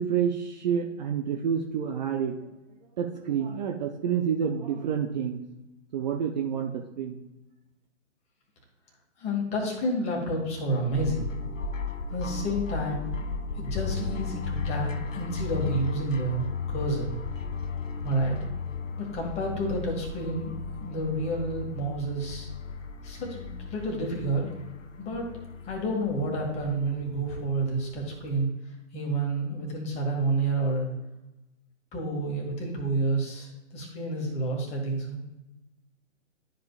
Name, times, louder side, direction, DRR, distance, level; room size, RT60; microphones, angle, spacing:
voice 1, 0.0-2.3 3.0-5.4 5.9-6.7 7.0-7.2, right 8 dB, 35° right, 2 dB, 0.7 m, -28 dB
voice 2, 9.2-11.3 12.1-13.1 13.6-17.1 18.0-18.4 19.0-20.6 20.8-22.5 23.0-24.5 25.0-25.3 25.7-28.5 28.9-30.9 31.9-35.2, right 2 dB, 15° left, -1 dB, 1.7 m, -29 dB
sound 1, 10.9-28.4, left 5 dB, 85° left, 0.8 m, -35 dB
12.0 x 5.2 x 2.4 m, 0.97 s
hypercardioid pair, 135°, 37 cm